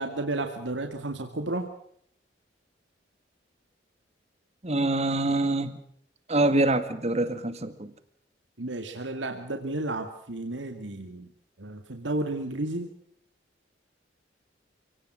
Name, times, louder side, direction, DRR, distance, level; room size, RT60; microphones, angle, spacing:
voice 1, 0.0-1.7 8.6-11.3 11.6-12.9, right 2 dB, 85° right, 5 dB, 2.2 m, -32 dB
voice 2, 4.6-5.8 6.3-7.9, right 2 dB, 35° right, 11 dB, 2.0 m, -25 dB
28.0 x 18.0 x 6.3 m, 0.66 s
head